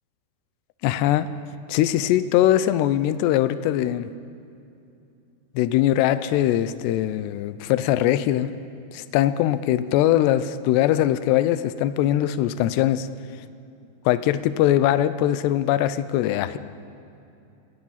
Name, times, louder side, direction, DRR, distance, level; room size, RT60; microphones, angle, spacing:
voice 1, 0.8-1.3 1.7-4.1 5.6-8.5 8.9-13.1 14.1-16.6, left 12 dB, 80° left, 13 dB, 2.8 m, -21 dB
26.5 x 20.5 x 5.8 m, 2.7 s
omnidirectional pair, 5.1 m